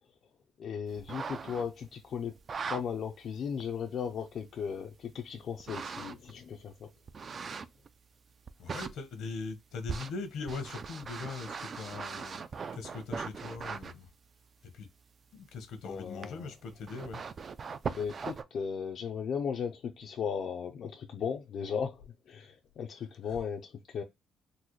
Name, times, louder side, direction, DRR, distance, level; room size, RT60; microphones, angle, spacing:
voice 1, 0.6-2.3 2.7-6.9 15.8-16.5 17.9-24.0, left 7 dB, 55° left, 0.4 m, -36 dB
sound 1, 1.0-1.8 2.4-2.8 3.6-3.7 5.6-6.3 7.1-7.9 8.5-8.9 9.9-13.9 16.2-16.3 16.7-18.4, right 5 dB, 35° right, 0.3 m, -39 dB
voice 2, 8.6-12.4 12.7-14.1 14.6-14.9 15.3-17.2 23.3-23.4, left 4 dB, 75° left, 0.9 m, -41 dB
3.9 x 2.1 x 3.0 m
cardioid pair, 140°, 0 cm